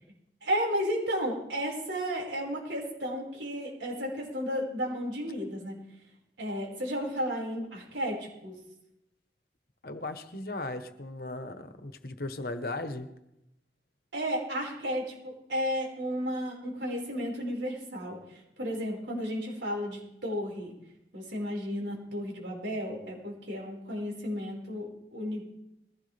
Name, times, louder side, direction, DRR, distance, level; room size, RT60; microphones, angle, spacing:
voice 1, 0.4-5.8 6.4-8.6 14.1-20.7 21.1-25.4, equal, 90° right, -2 dB, 5.2 m, -33 dB
voice 2, 9.8-13.1, left 2 dB, 55° left, 9 dB, 1.1 m, -37 dB
21.5 x 16.5 x 3.4 m, 0.84 s
head